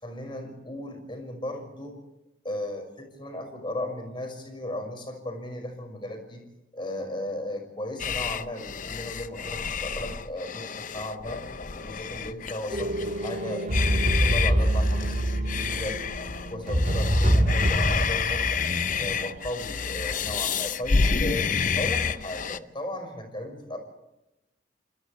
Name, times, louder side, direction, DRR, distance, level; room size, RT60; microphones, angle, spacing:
voice 1, 0.0-2.0 2.4-6.4 6.7-11.4 11.7-16.2 16.5-18.6 19.0-21.5 21.7-23.8, left 1 dB, 25° left, 5 dB, 5.9 m, -36 dB
sound 1, 8.0-22.6, left 6 dB, 40° left, 0.7 m, -29 dB
sound 2, 12.7-19.4, right 1 dB, 45° right, 3.6 m, -25 dB
29.0 x 28.0 x 3.3 m, 0.93 s
head